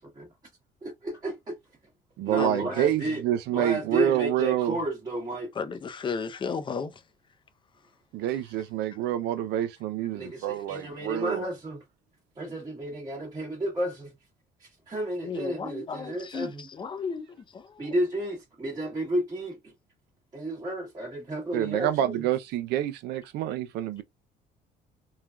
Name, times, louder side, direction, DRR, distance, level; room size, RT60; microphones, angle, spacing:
voice 1, 0.8-1.6 2.2-3.2 3.5-5.5 10.1-11.8 12.4-14.1 14.6-16.6 17.8-19.7 20.3-22.2, right 1 dB, 25° right, 1.1 m, -32 dB
voice 2, 2.2-4.8 8.1-11.4 21.5-24.0, right 12 dB, 85° right, 0.5 m, -27 dB
voice 3, 5.5-7.0 15.2-18.0, left 5 dB, 30° left, 0.5 m, -34 dB
3.2 x 2.3 x 2.2 m
cardioid pair, 110°, 17 cm